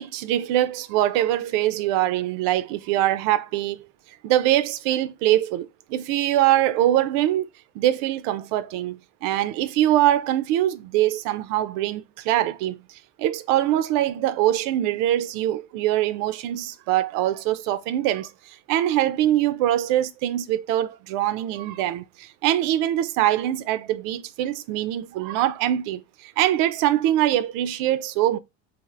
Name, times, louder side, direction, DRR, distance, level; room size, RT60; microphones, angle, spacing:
voice 1, 0.0-3.8 4.2-7.5 7.8-12.8 13.2-28.4, right 13 dB, 60° right, 0.5 m, -23 dB
3.4 x 2.5 x 2.4 m
supercardioid pair, 90°, 37 cm